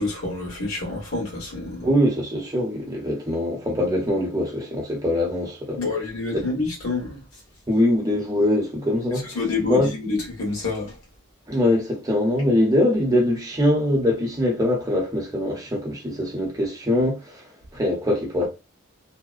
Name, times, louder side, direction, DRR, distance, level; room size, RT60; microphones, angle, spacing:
voice 1, 0.0-1.9 5.8-7.2 9.2-10.9, left 3 dB, 80° left, 1.3 m, -27 dB
voice 2, 1.8-5.8 6.3-6.5 7.7-9.4 9.7-9.9 11.5-17.4 17.7-18.5, left 1 dB, 15° right, 0.8 m, -22 dB
2.7 x 2.1 x 2.4 m
head